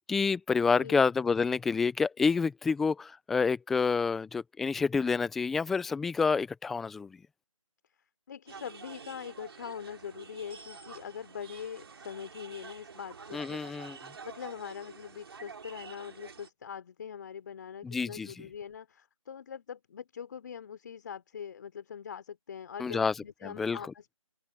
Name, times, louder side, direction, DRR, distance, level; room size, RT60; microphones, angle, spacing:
voice 1, 0.1-7.2 13.3-14.0 17.8-18.3 22.8-23.1 23.4-23.8, left 5 dB, ahead, 0.5 m, -28 dB
voice 2, 0.7-1.0 8.3-13.6 14.2-24.1, left 7 dB, 35° left, 3.8 m, -43 dB
sound 1, 8.5-16.5, right 5 dB, 45° right, 5.1 m, -48 dB
figure-of-eight pair, 160°, 17 cm